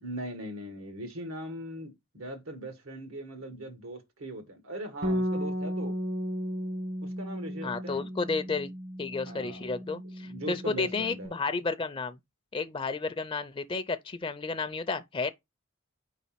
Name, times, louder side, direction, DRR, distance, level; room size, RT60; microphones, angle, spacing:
voice 1, 0.0-5.9 7.0-8.1 9.2-9.6 10.2-11.3, right 1 dB, 85° right, 1.6 m, -40 dB
Bass guitar, 5.0-11.3, equal, 55° right, 0.9 m, -35 dB
voice 2, 7.6-8.7 9.0-12.2 12.5-15.3, left 4 dB, 25° left, 0.4 m, -32 dB
4.8 x 4.1 x 5.6 m
head